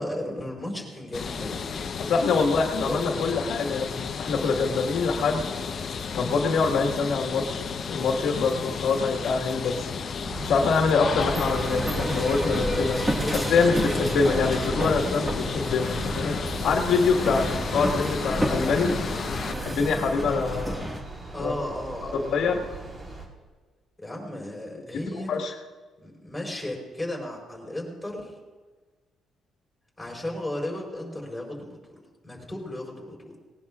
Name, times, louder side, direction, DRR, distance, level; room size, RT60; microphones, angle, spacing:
voice 1, 0.0-1.7 2.8-3.1 13.2-13.7 21.3-22.6 24.0-25.3 26.0-28.4 30.0-33.3, left 1 dB, 5° left, -2 dB, 4.4 m, -35 dB
sound 1, 1.1-19.5, left 5 dB, 45° left, 0.9 m, -33 dB
voice 2, 2.0-5.5 6.1-7.6 7.9-9.8 10.4-13.0 13.3-18.9 19.6-20.9 21.4-21.5 22.1-22.6 25.1-25.5, left 4 dB, 70° left, 2 dB, 1.6 m, -25 dB
sound 2, 10.2-23.3, right 2 dB, 30° right, 4.0 m, -41 dB
sound 3, 11.1-21.0, equal, 15° right, 1.8 m, -30 dB
19.5 x 18.5 x 2.5 m, 1.3 s
cardioid pair, 130°, 0 cm